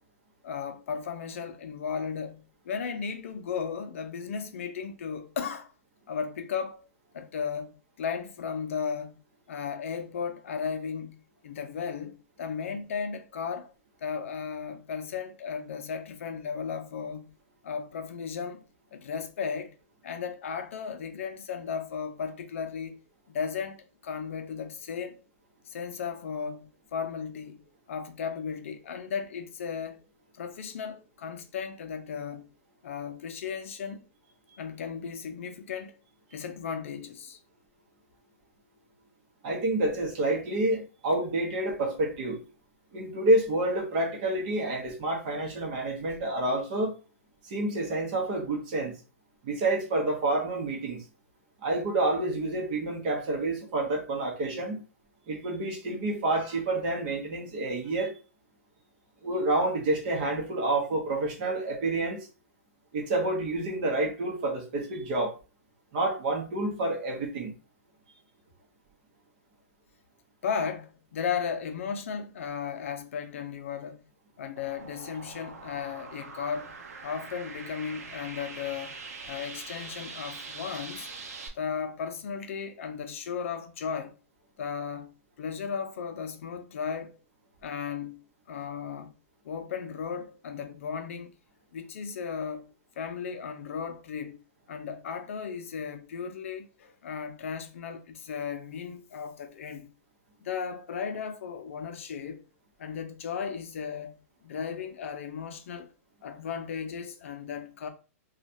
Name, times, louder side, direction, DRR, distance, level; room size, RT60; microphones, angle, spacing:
voice 1, 0.4-5.7 6.1-6.9 7.1-9.2 9.5-13.7 14.0-17.3 17.6-18.6 18.9-19.7 20.0-23.0 23.3-23.8 24.0-25.2 25.7-27.6 27.9-30.0 30.3-32.5 32.8-34.0 34.6-35.9 36.3-37.4 70.4-74.0 74.4-76.7 77.0-78.9 79.3-81.1 81.5-84.1 84.6-87.2 87.6-88.2 88.5-89.1 89.4-91.3 91.7-92.7 93.0-94.4 94.7-99.9 100.4-102.4 102.8-104.1 104.4-105.9 106.2-107.9, left 6 dB, 55° left, 0.5 m, -35 dB
voice 2, 39.4-42.4 42.9-46.9 47.4-48.9 49.4-51.0 51.6-54.8 55.3-58.1 59.2-62.2 62.9-65.4 65.9-67.5, right 2 dB, 35° right, 0.8 m, -28 dB
sound 1, 74.6-81.5, right 4 dB, 80° right, 0.7 m, -43 dB
3.1 x 2.3 x 2.6 m
hypercardioid pair, 165°, 8 cm